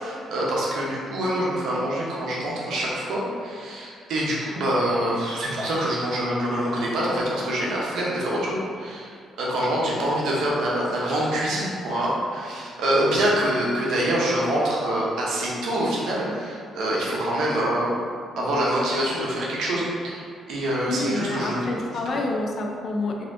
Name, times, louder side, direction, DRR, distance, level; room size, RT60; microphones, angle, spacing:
voice 1, 0.0-17.9 18.4-21.7, right 1 dB, 75° right, -5 dB, 0.7 m, -25 dB
voice 2, 20.9-23.3, left 2 dB, 55° left, 0 dB, 0.4 m, -28 dB
3.2 x 2.7 x 2.6 m, 2.2 s
cardioid pair, 90°, 0 cm